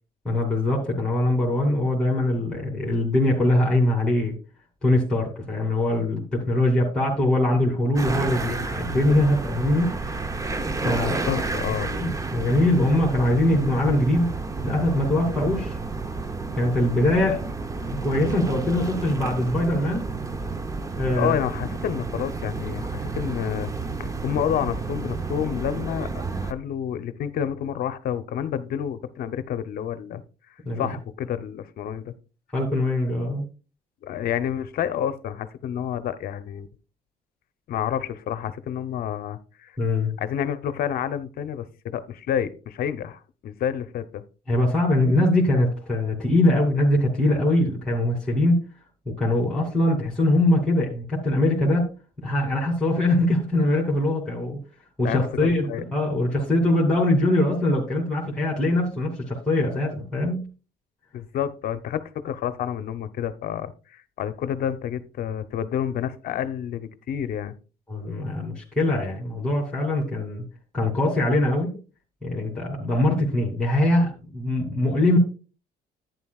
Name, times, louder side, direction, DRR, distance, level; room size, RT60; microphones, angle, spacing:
voice 1, 0.2-4.3 4.8-10.0 10.8-11.2 11.8-14.3 14.6-15.8 16.5-17.4 18.0-20.0 21.0-21.3 30.7-30.9 32.5-33.4 39.8-40.1 44.5-48.6 49.1-51.9 52.2-54.6 55.0-60.5 67.9-70.4 70.7-71.8 72.2-75.2, left 1 dB, 5° left, 2.6 m, -22 dB
sound 1, 8.0-26.5, right 3 dB, 20° right, 0.7 m, -31 dB
voice 2, 11.0-11.9 21.2-23.7 24.0-30.2 30.7-32.1 34.0-36.7 37.7-39.7 40.2-44.2 55.0-55.8 61.1-67.5, left 9 dB, 60° left, 0.7 m, -29 dB
11.0 x 9.3 x 2.3 m
cardioid pair, 110°, 17 cm